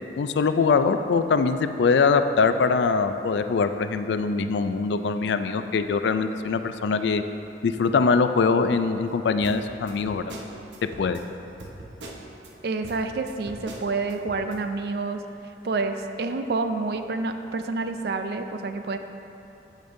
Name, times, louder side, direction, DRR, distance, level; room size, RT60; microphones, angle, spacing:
voice 1, 0.2-7.2 7.6-10.2 11.0-11.2, left 4 dB, 80° left, 9 dB, 0.4 m, -22 dB
sound 1, 9.4-12.5 12.8-14.6, right 1 dB, 90° right, 0.8 m, -42 dB
voice 2, 12.6-15.2 15.6-19.0, right 3 dB, 60° right, 7 dB, 0.4 m, -28 dB
14.5 x 5.1 x 2.7 m, 2.9 s
head